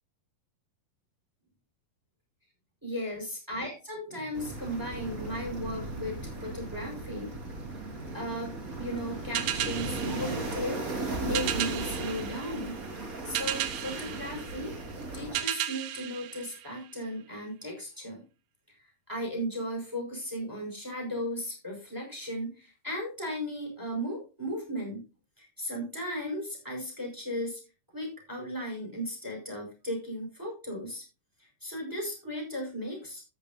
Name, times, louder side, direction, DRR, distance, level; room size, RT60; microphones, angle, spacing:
voice 1, 2.8-7.3 8.1-12.8 13.2-14.7 15.1-18.2 18.7-25.0 25.4-27.6 27.9-31.0 31.4-33.2, equal, 5° right, 1 dB, 5.1 m, -36 dB
sound 1, 4.3-15.4, right 2 dB, 30° right, 2.0 m, -37 dB
sound 2, 9.3-17.2, right 12 dB, 85° right, 2.6 m, -35 dB
13.5 x 8.9 x 2.7 m, 0.32 s
omnidirectional pair, 4.0 m